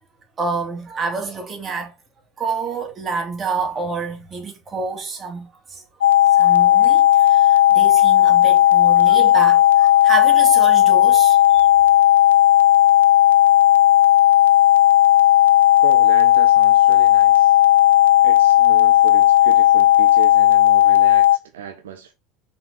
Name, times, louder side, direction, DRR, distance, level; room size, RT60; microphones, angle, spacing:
voice 1, 0.4-1.9 2.4-5.8 6.3-11.7, right 4 dB, 25° right, 2.7 m, -28 dB
sound 1, 6.0-21.4, left 13 dB, 70° left, 0.3 m, -14 dB
voice 2, 15.8-17.6 18.2-22.1, right 9 dB, 65° right, 0.8 m, -34 dB
6.1 x 4.4 x 3.7 m
figure-of-eight pair, 75°, 0 cm